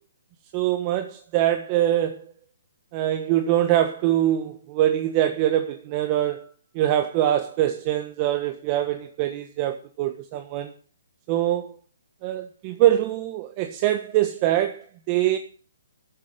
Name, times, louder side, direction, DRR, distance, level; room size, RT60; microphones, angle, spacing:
voice 1, 0.5-2.2 2.9-6.5 6.7-10.7 11.3-11.8 12.2-15.4, right 12 dB, 25° right, 1.2 m, -23 dB
13.0 x 7.6 x 9.0 m
hypercardioid pair, 160°, 0 cm